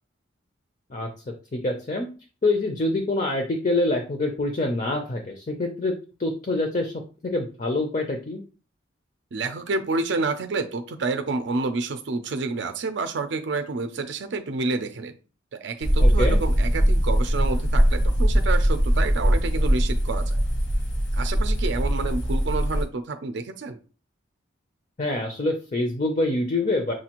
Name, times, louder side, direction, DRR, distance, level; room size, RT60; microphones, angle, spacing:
voice 1, 1.5-2.1 2.4-5.9 6.2-6.9 7.2-8.4 16.0-16.4 25.0-26.9, left 2 dB, 40° left, 4 dB, 0.5 m, -25 dB
voice 2, 9.3-15.1 15.5-20.4 21.1-23.8, right 3 dB, 65° right, 7 dB, 0.4 m, -29 dB
sound 1, 15.8-22.8, equal, 70° left, 1.0 m, -21 dB
6.1 x 2.4 x 2.9 m, 0.35 s
head